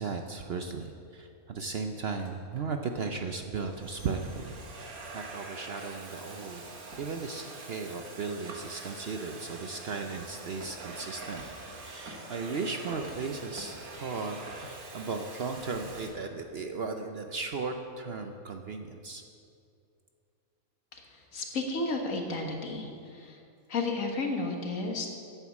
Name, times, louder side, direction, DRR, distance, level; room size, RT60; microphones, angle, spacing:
voice 1, 0.0-4.6 5.1-6.6 7.0-11.4 11.7-19.2, right 4 dB, 55° right, 5 dB, 0.8 m, -36 dB
Domestic sounds home sounds, 2.2-2.6 3.4-16.1, right 2 dB, 80° right, 1.9 m, -45 dB
voice 2, 20.9-23.4 23.7-25.1, left 3 dB, 65° left, 2 dB, 1.8 m, -33 dB
10.5 x 8.0 x 7.2 m, 2.4 s
omnidirectional pair, 1.5 m